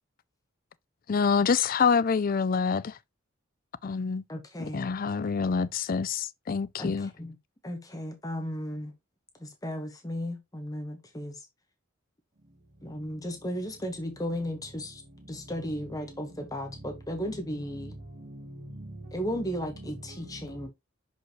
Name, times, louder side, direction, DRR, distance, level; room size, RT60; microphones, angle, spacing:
voice 1, 1.1-3.0 3.8-4.2 4.7-7.1, left 5 dB, 45° left, 0.4 m, -26 dB
voice 2, 4.3-4.8 6.8-7.3 7.6-8.9 9.4-11.4 12.8-15.0 15.3-18.0 19.1-20.7, equal, 15° left, 1.2 m, -35 dB
voice 3, 17.8-19.1 20.1-20.7, right 1 dB, 35° right, 0.7 m, -43 dB
6.2 x 5.2 x 3.0 m
head